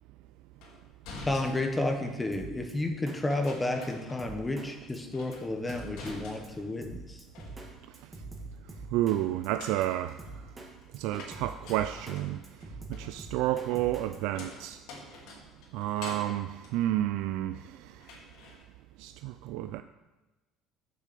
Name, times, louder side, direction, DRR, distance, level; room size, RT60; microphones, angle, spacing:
sound 1, 0.6-2.2 3.3-4.6 4.9-6.8 7.1-7.9 9.3-17.6 18.0-18.6, left 3 dB, 80° left, 2.4 m, -48 dB
voice 1, 1.2-7.3, left 2 dB, 10° left, 5 dB, 1.1 m, -31 dB
Drum kit, 2.3-2.7 3.1-3.2 3.4-3.5 3.8-3.9 4.2-4.7 4.9-5.0 5.3-5.4 5.7-6.2 6.4-6.5 6.8-7.7 7.9-9.2 9.4-9.5 9.8-9.9 10.2-10.7 10.9-12.2 12.4-14.2, right 3 dB, 20° right, 1.7 m, -44 dB
voice 2, 8.9-10.2 10.9-12.4 12.9-14.8 15.7-17.9 19.0-19.8, right 14 dB, 80° right, 10 dB, 0.3 m, -30 dB
8.6 x 6.6 x 6.8 m, 1.1 s
cardioid pair, 140°, 0 cm